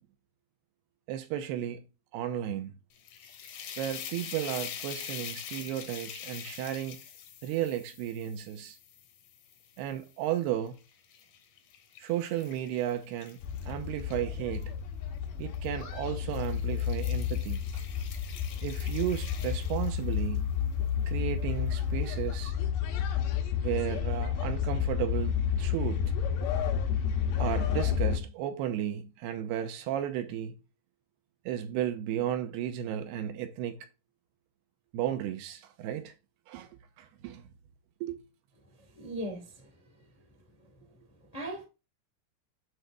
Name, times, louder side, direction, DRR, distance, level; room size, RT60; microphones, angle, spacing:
voice 1, 1.1-1.9 2.1-2.8 3.8-7.0 7.4-8.8 9.8-10.8 12.0-14.7 15.4-17.8 18.6-20.6 21.1-22.5 23.6-26.1 27.4-30.6 31.5-33.8 34.9-36.1 36.5-37.5 38.0-38.2, right 11 dB, 80° right, 2.7 m, -34 dB
sound 1, 2.9-10.1 10.7-14.6 15.5-15.8 16.2-20.4, left 8 dB, 65° left, 2.2 m, -45 dB
sound 2, 13.4-28.2, left 8 dB, 80° left, 3.5 m, -31 dB
voice 2, 38.9-39.5 41.3-41.6, right 1 dB, 35° left, 0.5 m, -37 dB
7.9 x 3.4 x 6.5 m
omnidirectional pair, 5.0 m